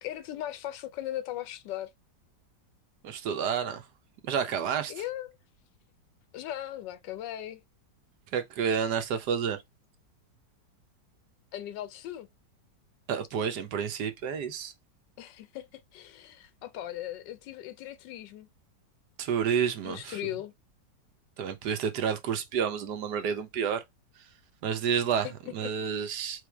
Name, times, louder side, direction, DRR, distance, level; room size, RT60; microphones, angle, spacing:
voice 1, 0.0-1.9 4.9-5.4 6.3-7.6 11.5-12.3 15.2-18.5 19.8-20.5 25.2-25.5 26.0-26.2, left 13 dB, 80° left, 1.3 m, -38 dB
voice 2, 3.0-3.8 4.2-4.9 8.3-9.6 13.1-14.7 19.2-20.2 21.4-23.8 24.6-26.4, right 7 dB, 70° right, 1.3 m, -30 dB
4.3 x 3.2 x 3.4 m
omnidirectional pair, 2.0 m